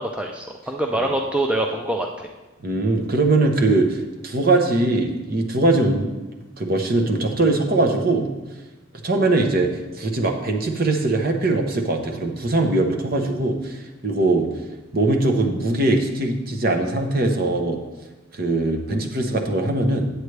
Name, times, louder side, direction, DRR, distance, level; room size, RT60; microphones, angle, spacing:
voice 1, 0.0-2.3, right 1 dB, 5° right, 1 dB, 0.4 m, -25 dB
voice 2, 2.6-6.2 6.6-8.3 9.0-9.7 9.9-14.5 14.9-17.8 18.3-20.1, right 2 dB, 45° right, 4 dB, 0.9 m, -21 dB
9.2 x 8.1 x 3.3 m, 1.1 s
head